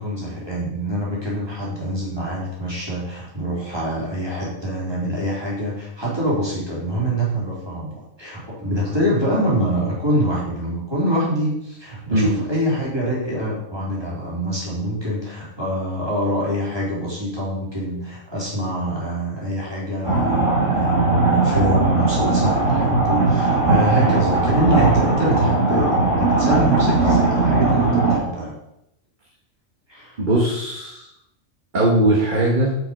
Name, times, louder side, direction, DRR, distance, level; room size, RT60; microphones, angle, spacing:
voice 1, 0.0-28.5 29.9-30.2, right 1 dB, 20° right, -5 dB, 3.7 m, -25 dB
voice 2, 12.1-12.4 23.9-24.1 30.2-31.1 31.7-32.8, right 1 dB, 40° right, -3 dB, 1.5 m, -20 dB
sound 1, 20.0-28.2, right 3 dB, 70° right, 3.5 m, -18 dB
7.6 x 7.1 x 5.2 m, 0.83 s
omnidirectional pair, 1.3 m